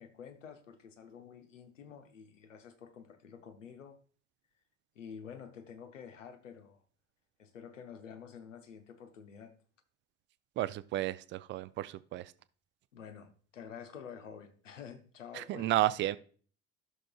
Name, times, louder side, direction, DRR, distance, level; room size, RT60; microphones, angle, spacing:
voice 1, 0.0-4.0 4.9-6.8 7.4-9.5 12.9-16.1, left 7 dB, 75° left, 1.0 m, -49 dB
voice 2, 10.6-12.2 15.3-16.2, right 15 dB, 30° right, 0.4 m, -32 dB
14.0 x 6.3 x 2.3 m
figure-of-eight pair, 65°, 38 cm